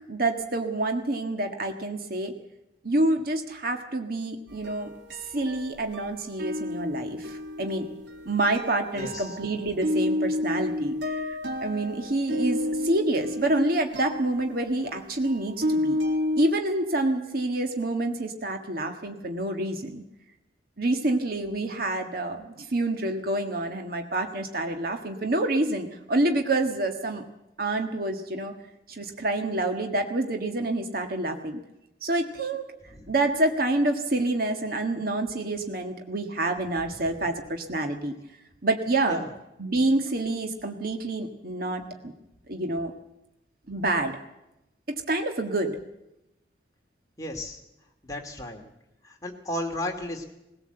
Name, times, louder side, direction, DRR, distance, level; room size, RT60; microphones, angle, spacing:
voice 1, 0.1-2.3 2.8-4.9 5.3-7.9 8.3-16.0 16.4-20.0 20.8-27.2 27.6-28.5 28.9-31.6 32.0-32.6 33.1-38.2 38.6-39.2 39.6-42.1 42.5-42.9 43.7-44.2 44.9-45.8, right 2 dB, 55° right, 5 dB, 1.6 m, -27 dB
sound 1, 4.5-6.1 6.4-16.4, left 1 dB, 75° right, 2.1 m, -31 dB
voice 2, 8.9-9.4 32.9-33.1 39.1-39.3 47.2-47.6 48.0-48.6 49.0-50.3, left 1 dB, 20° left, 2 dB, 2.5 m, -34 dB
20.0 x 17.0 x 7.8 m, 0.91 s
head